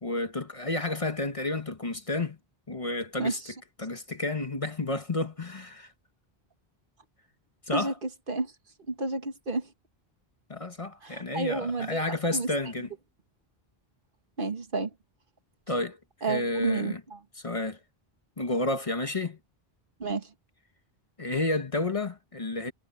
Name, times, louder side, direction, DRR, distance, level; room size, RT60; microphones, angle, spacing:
voice 1, 0.0-2.4 2.7-3.4 3.8-5.9 7.7-7.9 10.5-12.9 15.7-16.0 16.3-17.0 17.4-17.8 18.4-19.4 21.2-22.7, left 2 dB, 35° left, 1.3 m, -31 dB
voice 2, 3.2-3.5 7.7-8.5 8.9-9.7 11.0-12.5 14.4-14.9 16.2-17.2 20.0-20.3, right 3 dB, 55° right, 1.6 m, -31 dB
omnidirectional pair, 1.0 m